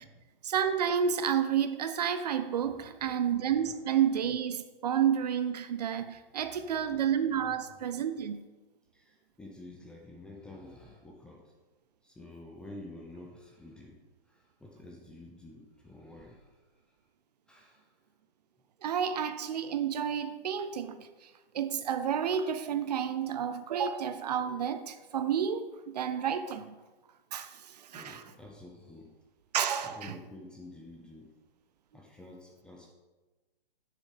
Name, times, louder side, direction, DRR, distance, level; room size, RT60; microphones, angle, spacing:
voice 1, 0.4-8.4 18.8-21.1 21.5-26.7 27.3-28.2 29.5-30.1, right 8 dB, 45° right, 0.6 m, -30 dB
voice 2, 2.6-3.2 3.5-3.8 6.1-7.0 7.3-7.8 8.9-11.5 12.0-14.0 14.3-16.6 17.5-18.0 27.9-29.1 29.8-31.3 31.9-32.9, left 2 dB, 5° left, 0.5 m, -50 dB
9.7 x 6.7 x 5.1 m
figure-of-eight pair, 135°, 30 cm